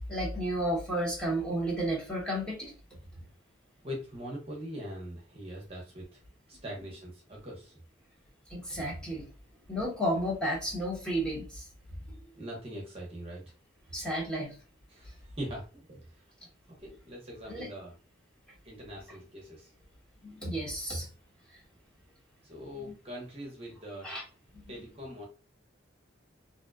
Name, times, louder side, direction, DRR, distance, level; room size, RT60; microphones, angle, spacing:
voice 1, 0.1-2.7 8.5-9.3 9.7-11.7 12.1-12.2 13.9-14.5 17.5-17.7 20.2-21.1 21.5-21.6 22.8-22.9 24.0-24.2, right 1 dB, 5° left, -4 dB, 0.7 m, -32 dB
voice 2, 3.8-6.2 6.5-7.8 8.8-8.9 9.2-9.3 12.4-13.4 14.9-16.0 16.4-17.9 18.6-19.7 22.5-24.1 24.7-25.3, equal, 30° right, -1 dB, 0.6 m, -42 dB
2.5 x 2.1 x 2.3 m, 0.34 s
head